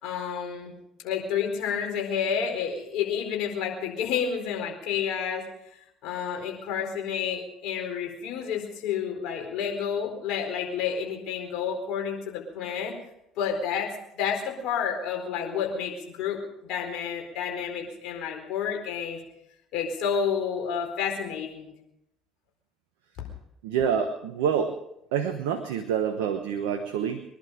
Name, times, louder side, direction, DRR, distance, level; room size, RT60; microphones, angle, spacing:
voice 1, 0.0-0.7 1.0-5.4 6.0-12.9 13.4-13.9 14.1-19.2 19.7-21.7, left 7 dB, 65° left, 1 dB, 4.3 m, -30 dB
voice 2, 23.6-24.7 25.1-27.2, right 7 dB, 75° right, 7 dB, 1.2 m, -27 dB
23.5 x 11.5 x 5.1 m, 0.80 s
hypercardioid pair, 60°, 0 cm